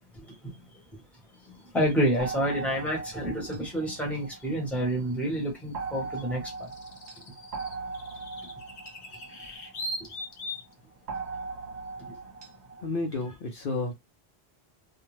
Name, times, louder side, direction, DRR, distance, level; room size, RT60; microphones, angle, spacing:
voice 1, 0.1-0.6 1.4-6.7 7.3-7.4 8.2-8.3 9.1-9.4 12.1-12.2, equal, ahead, 1.0 m, -29 dB
sound 1, 1.7-1.9 4.4-4.5 6.2-10.7, left 1 dB, 80° left, 1.1 m, -40 dB
sound 2, 2.2-5.0 5.7-10.3 11.1-12.9, right 4 dB, 45° right, 0.8 m, -39 dB
voice 2, 12.8-13.9, left 3 dB, 60° left, 0.8 m, -31 dB
2.6 x 2.2 x 3.1 m
omnidirectional pair, 1.1 m